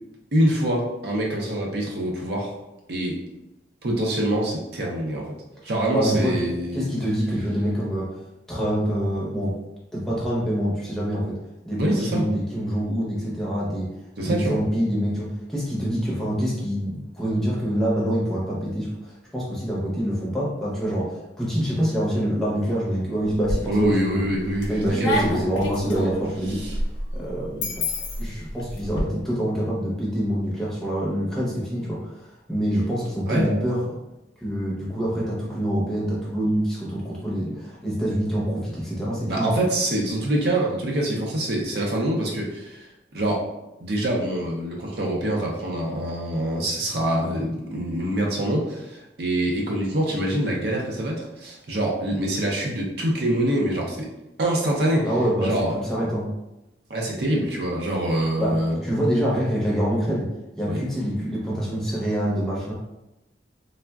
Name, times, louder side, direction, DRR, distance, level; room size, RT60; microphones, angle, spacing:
voice 1, 0.3-2.5 2.9-3.2 3.8-5.3 5.6-6.8 11.8-12.3 14.2-14.6 23.7-24.8 33.3-33.5 39.3-42.9 43.1-43.4 43.8-54.1 54.4-55.1 55.4-55.7 56.9-58.8 60.7-60.8, right 1 dB, 55° right, -2 dB, 0.5 m, -25 dB
voice 2, 5.9-8.2 8.5-9.6 9.9-11.4 11.6-13.9 14.2-24.3 24.7-26.8 27.1-27.9 28.2-34.0 34.4-39.5 55.0-56.3 58.4-60.3 60.6-62.7, equal, ahead, -7 dB, 0.6 m, -26 dB
sound 1, 23.2-24.0 24.4-29.0, left 1 dB, 85° left, 0.6 m, -28 dB
3.3 x 2.0 x 2.3 m, 0.94 s
head